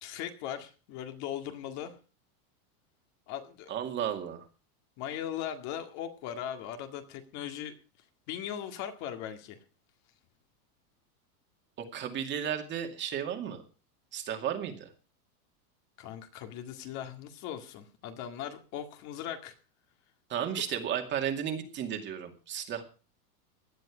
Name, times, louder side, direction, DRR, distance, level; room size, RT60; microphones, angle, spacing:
voice 1, 0.0-2.0 3.3-3.7 5.0-7.7 8.3-9.6 16.0-19.5, left 10 dB, 40° left, 6 dB, 2.0 m, -39 dB
voice 2, 3.7-4.5 11.9-13.6 14.1-14.9 20.3-22.8, right 9 dB, 25° right, 5 dB, 2.3 m, -33 dB
17.5 x 11.0 x 5.0 m, 0.36 s
supercardioid pair, 160°, 44 cm